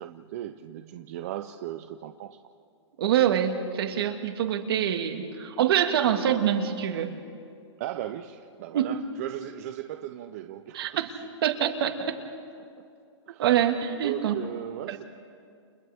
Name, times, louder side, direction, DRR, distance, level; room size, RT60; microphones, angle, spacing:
voice 1, 0.0-2.4 7.8-11.0 12.6-12.8 13.3-13.5 14.0-15.0, right 12 dB, 30° right, 7 dB, 0.6 m, -37 dB
voice 2, 3.0-7.1 8.7-9.0 10.7-11.1 11.4-12.1 13.4-14.3 14.9-15.0, right 9 dB, 55° right, 6 dB, 1.8 m, -25 dB
30.0 x 27.5 x 3.5 m, 2.4 s
hypercardioid pair, 165°, 15 cm